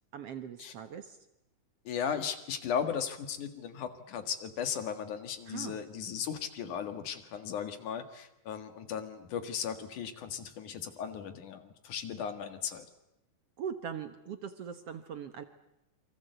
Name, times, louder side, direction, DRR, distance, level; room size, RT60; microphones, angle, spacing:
voice 1, 0.1-1.2 5.5-5.8 13.6-15.4, right 8 dB, 60° right, 9 dB, 1.8 m, -41 dB
voice 2, 1.8-12.9, left 7 dB, 70° left, 9 dB, 3.2 m, -36 dB
28.0 x 24.0 x 8.1 m, 0.89 s
omnidirectional pair, 3.8 m